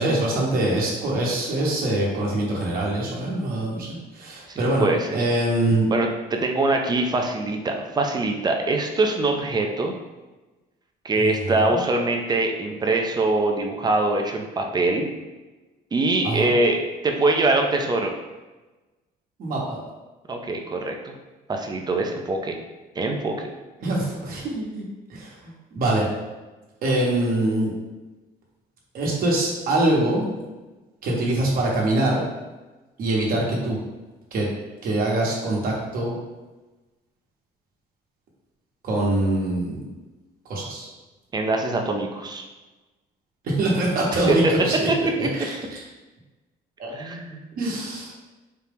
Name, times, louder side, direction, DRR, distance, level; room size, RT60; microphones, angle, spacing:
voice 1, 0.0-4.8 5.1-5.9 11.2-11.8 16.2-16.5 19.4-19.8 23.8-26.1 26.8-27.7 28.9-30.3 31.0-32.2 33.0-33.8 34.3-34.5 34.8-36.2 38.8-39.8 40.5-40.9 43.4-44.9 45.2-45.8 46.8-46.9 47.6-48.1, right 1 dB, 60° right, -3 dB, 1.2 m, -24 dB
voice 2, 4.5-5.2 5.9-9.9 11.0-15.1 15.9-18.1 20.3-21.1 21.5-22.5 23.0-23.5 41.3-42.4 44.3-44.5 44.9-45.0 45.2-45.3 46.9-47.4, right 2 dB, 25° right, 2 dB, 0.5 m, -23 dB
4.3 x 2.4 x 3.5 m, 1.2 s
cardioid pair, 110°, 17 cm